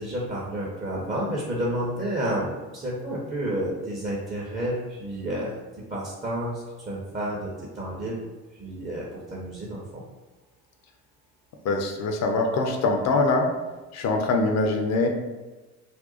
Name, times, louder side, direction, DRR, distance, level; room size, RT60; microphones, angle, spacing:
voice 1, 0.0-5.6 5.9-8.2 8.5-10.0, right 1 dB, 15° right, -5 dB, 0.7 m, -30 dB
voice 2, 11.6-13.5 13.9-15.1, left 3 dB, 35° left, 3 dB, 0.6 m, -23 dB
2.6 x 2.2 x 4.0 m, 1.2 s
figure-of-eight pair, 60°, 48 cm